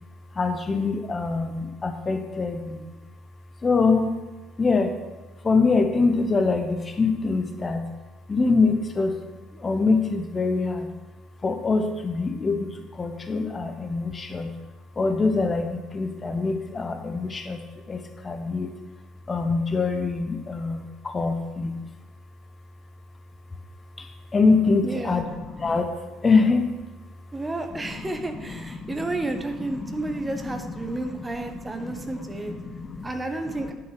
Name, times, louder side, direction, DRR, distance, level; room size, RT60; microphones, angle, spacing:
voice 1, 0.3-2.9 3.6-4.2 4.6-4.9 5.4-7.8 8.3-9.1 9.6-10.9 11.4-14.5 15.0-17.6 17.9-18.7 19.3-21.7 24.0-24.1 24.3-25.9 26.2-26.8 27.7-31.0 31.3-31.4 31.7-33.1, left 4 dB, 25° left, 6 dB, 1.0 m, -25 dB
voice 2, 24.8-25.2 27.3-32.5 33.0-33.7, right 2 dB, 15° right, 6 dB, 1.1 m, -31 dB
9.7 x 6.9 x 6.2 m, 1.2 s
figure-of-eight pair, 55°, 0 cm